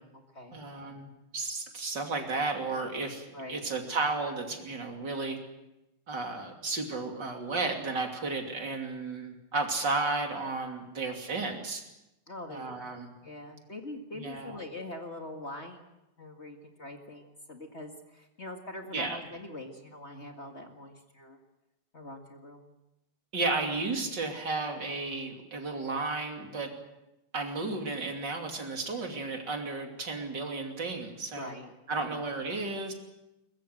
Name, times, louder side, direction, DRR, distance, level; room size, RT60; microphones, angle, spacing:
voice 1, 0.5-5.4 6.1-11.8 12.5-13.1 14.2-14.6 18.9-19.2 23.3-26.7 27.3-31.5 31.9-32.9, right 3 dB, 55° right, 3 dB, 3.5 m, -33 dB
voice 2, 12.3-12.7 13.2-15.8 16.2-21.4 21.9-22.7 31.3-31.7 32.0-32.2, left 1 dB, 35° left, 4 dB, 2.1 m, -43 dB
22.5 x 21.0 x 7.8 m, 0.93 s
omnidirectional pair, 2.3 m